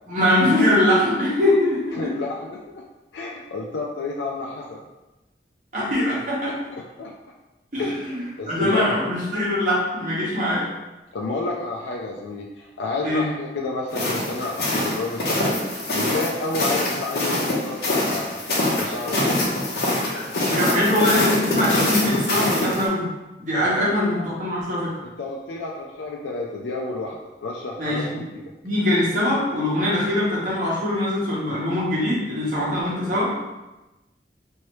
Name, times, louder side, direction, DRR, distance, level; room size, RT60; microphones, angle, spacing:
voice 1, 0.1-2.1 5.7-6.5 7.7-10.7 13.0-13.2 20.5-23.1 23.4-24.9 27.8-28.2 28.6-33.3, left 1 dB, 45° right, -7 dB, 1.1 m, -22 dB
voice 2, 2.0-2.8 3.1-4.8 6.7-7.1 7.8-9.0 11.1-18.4 18.7-19.3 23.6-24.2 25.0-28.4, left 3 dB, 85° left, -2 dB, 0.4 m, -30 dB
sound 1, 13.9-22.8, left 1 dB, 60° left, 0.7 m, -24 dB
3.1 x 2.7 x 3.0 m, 1.0 s
head